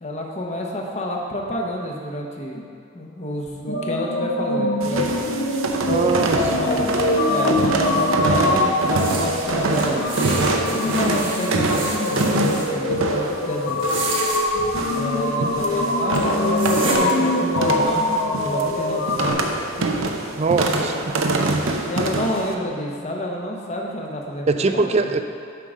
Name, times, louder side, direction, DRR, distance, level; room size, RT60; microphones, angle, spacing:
voice 1, 0.0-2.6 2.9-5.2 6.2-6.9 7.3-13.8 14.9-19.4 19.8-20.1 21.8-25.1, left 1 dB, 35° left, 0 dB, 0.9 m, -29 dB
sound 1, 3.7-19.3, left 1 dB, 80° left, 1.1 m, -23 dB
sound 2, 4.8-22.5, right 2 dB, 80° right, 0.7 m, -25 dB
voice 2, 5.8-6.5 20.4-21.1 24.5-25.2, right 3 dB, 30° right, 7 dB, 0.4 m, -21 dB
sound 3, 9.0-12.7 13.7-14.4 15.6-15.7 16.1-16.2 16.6-17.0, right 3 dB, 65° right, 1.3 m, -30 dB
9.2 x 3.8 x 6.1 m, 2.4 s
head